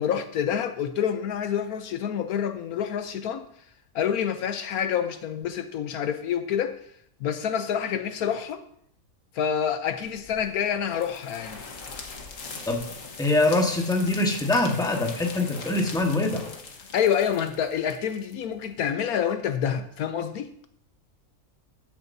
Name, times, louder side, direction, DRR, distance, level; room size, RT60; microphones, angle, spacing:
voice 1, 0.0-3.5 3.9-6.8 7.2-8.6 9.3-11.6 16.9-20.5, left 8 dB, 75° left, 9 dB, 1.1 m, -27 dB
sound 1, 10.0-18.8, left 4 dB, 60° left, 1.6 m, -42 dB
voice 2, 13.2-16.5, left 2 dB, 5° left, 1 dB, 1.3 m, -23 dB
13.0 x 10.0 x 2.7 m, 0.68 s
omnidirectional pair, 1.6 m